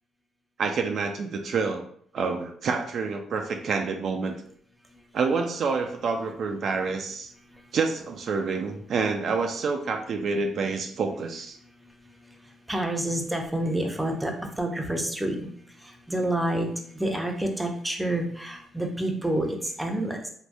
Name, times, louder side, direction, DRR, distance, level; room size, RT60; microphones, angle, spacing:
voice 1, 0.6-1.8 2.1-4.3 5.1-7.3 7.7-11.6, right 4 dB, 60° right, 4 dB, 0.3 m, -28 dB
voice 2, 12.7-15.5 15.8-16.7 16.9-20.3, right 1 dB, 10° right, 2 dB, 0.6 m, -28 dB
3.4 x 2.1 x 2.5 m, 0.63 s
cardioid pair, 90°, 0 cm